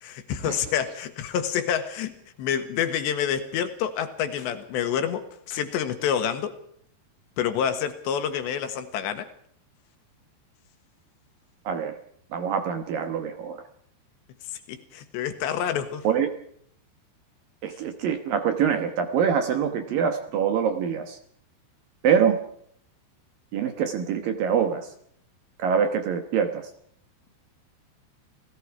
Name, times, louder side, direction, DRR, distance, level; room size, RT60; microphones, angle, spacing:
voice 1, 0.0-6.6 7.4-9.3 14.5-16.1, left 8 dB, 75° left, 9 dB, 3.6 m, -28 dB
voice 2, 12.3-13.6 16.0-16.3 17.6-21.2 22.0-22.4 23.5-24.9 25.6-26.7, right 7 dB, 65° right, 7 dB, 2.5 m, -24 dB
29.5 x 18.0 x 4.8 m, 0.65 s
omnidirectional pair, 5.3 m